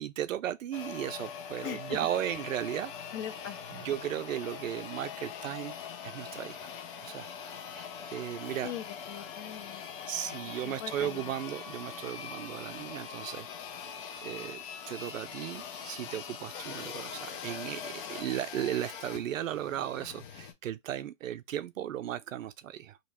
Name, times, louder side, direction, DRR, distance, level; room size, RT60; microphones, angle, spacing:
voice 1, 0.0-2.9 3.7-5.7 6.0-6.7 7.0-7.3 7.6-8.7 10.1-13.5 13.8-23.0, right 11 dB, 70° right, 0.5 m, -36 dB
sound 1, 0.7-20.5, left 7 dB, 40° left, 1.0 m, -42 dB
voice 2, 1.6-2.0 2.3-2.4 3.1-3.9 8.6-9.8 10.4-11.3, left 10 dB, 25° left, 0.6 m, -41 dB
3.0 x 2.9 x 4.1 m
hypercardioid pair, 140°, 40 cm